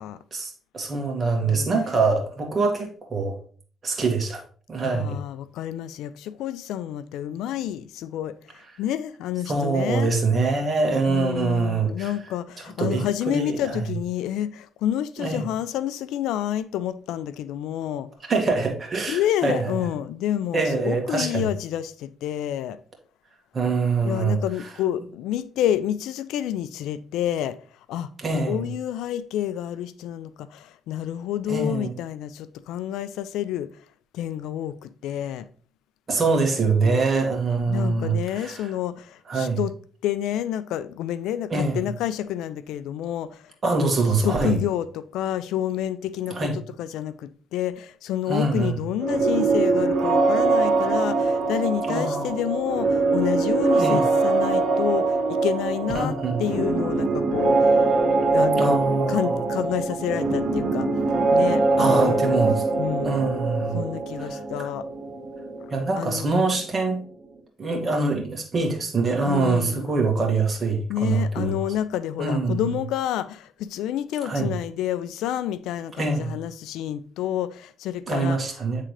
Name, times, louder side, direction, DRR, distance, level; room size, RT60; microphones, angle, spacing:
voice 1, 0.3-3.3 3.8-4.4 4.7-5.2 9.5-12.1 12.8-13.8 15.2-15.4 18.3-19.6 20.5-21.4 23.5-24.4 28.2-28.6 31.5-31.9 36.1-38.6 39.3-39.6 41.5-41.8 43.6-44.6 46.3-46.5 48.3-48.8 51.9-52.3 53.8-54.0 55.9-56.5 58.6-59.3 61.8-62.6 63.0-63.8 65.7-67.0 67.6-71.5 72.2-72.6 74.3-74.5 76.0-76.4 78.1-78.8, right 3 dB, 35° right, 1.9 m, -24 dB
voice 2, 4.8-10.1 11.1-18.1 19.1-22.8 24.0-27.6 27.9-33.8 34.1-35.4 36.7-37.0 37.7-39.7 40.0-57.9 58.3-60.9 61.3-62.2 62.8-63.2 63.7-64.9 66.0-66.5 68.0-68.1 69.2-69.9 70.9-78.4, left 11 dB, 90° left, 0.4 m, -29 dB
sound 1, 49.0-66.6, right 3 dB, 55° right, 1.9 m, -23 dB
8.8 x 3.7 x 3.2 m
cardioid pair, 90°, 0 cm